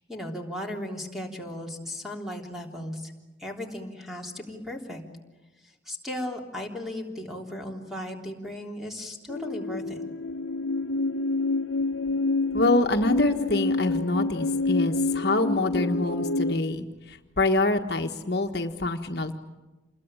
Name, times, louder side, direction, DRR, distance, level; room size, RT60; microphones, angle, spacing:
voice 1, 0.0-3.1 3.4-5.0 5.6-10.0, left 1 dB, ahead, 0 dB, 3.5 m, -36 dB
sound 1, 9.3-16.6, left 3 dB, 85° left, 0.9 m, -28 dB
voice 2, 12.5-19.3, left 2 dB, 55° left, 4 dB, 1.4 m, -26 dB
28.5 x 21.5 x 8.9 m, 1.2 s
head